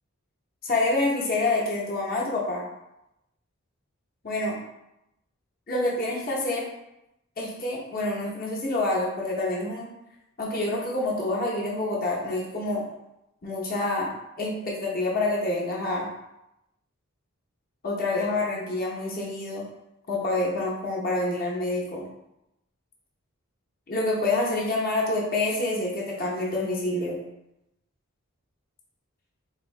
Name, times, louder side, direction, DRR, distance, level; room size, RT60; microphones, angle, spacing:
voice 1, 0.6-2.6 4.2-4.6 5.7-6.7 7.4-9.9 10.4-12.8 13.4-14.1 14.4-16.1 17.8-19.6 20.1-22.0 23.9-27.2, left 2 dB, 40° left, -4 dB, 0.8 m, -27 dB
4.2 x 2.6 x 3.2 m, 0.88 s
head